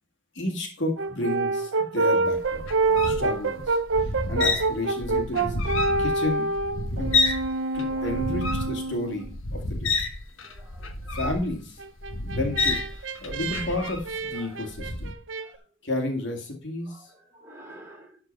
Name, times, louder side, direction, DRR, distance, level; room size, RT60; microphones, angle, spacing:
voice 1, 0.3-2.7 3.0-6.5 6.9-7.1 7.7-10.1 11.1-11.8 12.2-15.1 15.8-17.1, left 2 dB, 60° left, 2 dB, 2.3 m, -32 dB
Brass instrument, 1.0-9.3 11.8-15.5, right 3 dB, 70° right, 0.7 m, -27 dB
sound 1, 2.3-7.5 7.7-14.3 14.7-15.1, left 3 dB, 75° left, 1.3 m, -29 dB
voice 2, 7.7-8.3 10.4-11.3 14.3-14.9 15.4-15.7 16.8-18.2, right 1 dB, 15° right, -1 dB, 3.3 m, -50 dB
12.5 x 4.6 x 5.4 m, 0.37 s
head